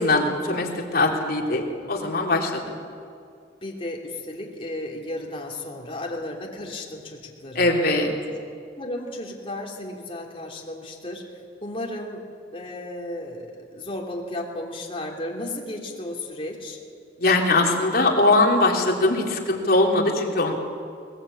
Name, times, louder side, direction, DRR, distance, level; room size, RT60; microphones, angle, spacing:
voice 1, 0.0-2.8 7.5-8.1 17.2-20.5, left 2 dB, 55° left, 0 dB, 3.3 m, -21 dB
voice 2, 3.6-7.7 8.3-8.4 8.7-12.2 12.5-16.8, left 1 dB, 30° left, -1 dB, 3.3 m, -34 dB
21.5 x 20.0 x 8.8 m, 2.3 s
head